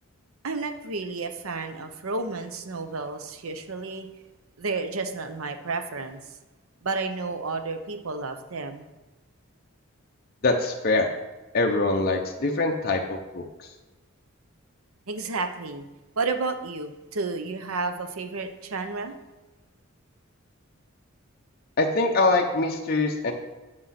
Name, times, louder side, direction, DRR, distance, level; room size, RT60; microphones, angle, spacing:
voice 1, 0.4-4.1 4.6-6.2 6.8-8.9 15.1-15.8 16.2-19.1, right 3 dB, 80° right, 8 dB, 0.8 m, -31 dB
voice 2, 10.4-11.1 11.5-13.7 21.8-23.3, left 2 dB, 45° left, 1 dB, 0.7 m, -24 dB
7.9 x 5.6 x 5.7 m, 1.1 s
head